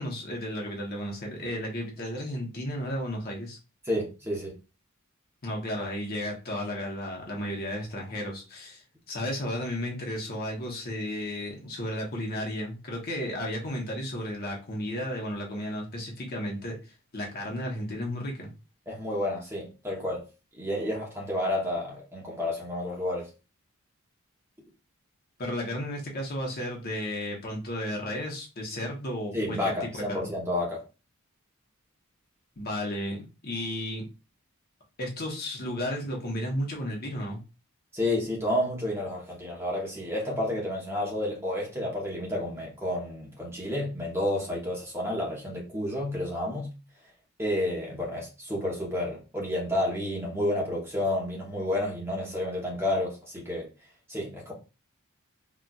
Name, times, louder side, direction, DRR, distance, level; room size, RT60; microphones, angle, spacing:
voice 1, 0.0-3.6 5.4-16.8 17.1-18.5 25.4-30.0 32.6-34.0 35.0-37.4, equal, 45° left, 0.9 m, -33 dB
voice 2, 3.8-4.5 18.9-20.2 20.5-23.3 29.3-30.8 37.9-46.7 47.4-53.7 54.1-54.5, left 1 dB, 10° right, 0.9 m, -30 dB
3.9 x 2.4 x 2.3 m
head